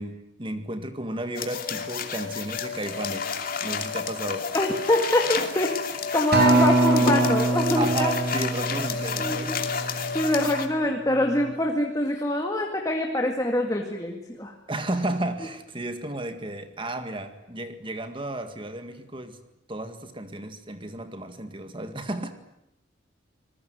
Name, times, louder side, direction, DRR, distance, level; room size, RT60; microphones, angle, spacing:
voice 1, 0.0-3.3 3.6-4.5 7.8-9.5 14.7-19.4 19.7-22.3, right 1 dB, 25° right, 8 dB, 1.9 m, -33 dB
sound 1, 1.4-10.7, left 5 dB, 50° left, 2.7 m, -31 dB
voice 2, 4.5-5.8 6.1-8.1 9.2-9.6 10.1-14.5, left 1 dB, 20° left, 2 dB, 2.1 m, -25 dB
Acoustic guitar, 6.3-10.7 11.4-11.5, right 2 dB, 55° right, 6.1 m, -24 dB
27.0 x 21.0 x 9.4 m, 0.82 s
head